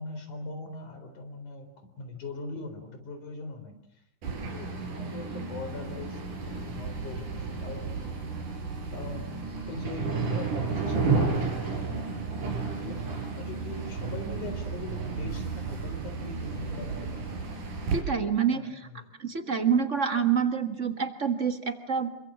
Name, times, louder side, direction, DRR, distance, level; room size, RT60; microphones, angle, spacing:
voice 1, 0.0-7.9 8.9-9.3 9.7-12.1 12.8-17.4 18.5-19.1, left 2 dB, 70° left, 7 dB, 5.6 m, -41 dB
sound 1, 4.2-18.0, right 4 dB, 80° right, 5.8 m, -32 dB
voice 2, 17.9-18.6 19.2-22.1, right 7 dB, 35° right, 8 dB, 1.3 m, -27 dB
28.0 x 24.5 x 7.5 m, 0.74 s
omnidirectional pair, 3.6 m